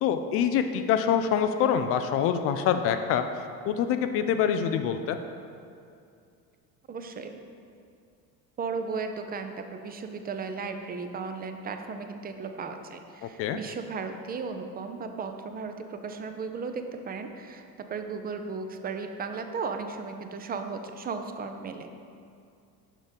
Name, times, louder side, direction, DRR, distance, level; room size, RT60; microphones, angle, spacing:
voice 1, 0.0-3.2 3.6-5.2 13.4-13.6, left 8 dB, 30° left, 8 dB, 0.4 m, -25 dB
voice 2, 6.9-7.4 8.6-17.6 17.9-21.9, right 4 dB, 20° right, 7 dB, 0.6 m, -35 dB
7.4 x 6.3 x 5.2 m, 2.4 s
figure-of-eight pair, 60°, 50 cm